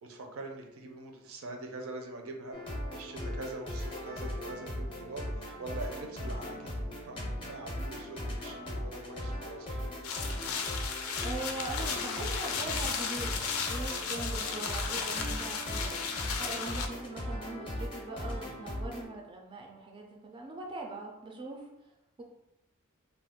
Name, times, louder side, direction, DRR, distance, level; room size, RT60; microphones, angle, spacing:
voice 1, 0.0-2.6 2.9-9.9, right 2 dB, 75° right, 3 dB, 0.5 m, -43 dB
sound 1, 2.5-19.0, left 1 dB, 25° left, 0.5 m, -38 dB
sound 2, 10.0-16.9, left 6 dB, 75° left, 0.4 m, -35 dB
voice 2, 11.2-13.4 13.7-16.0 16.4-21.7 22.2-22.3, right 2 dB, 25° right, 0 dB, 0.3 m, -41 dB
2.3 x 2.2 x 3.5 m, 0.92 s
head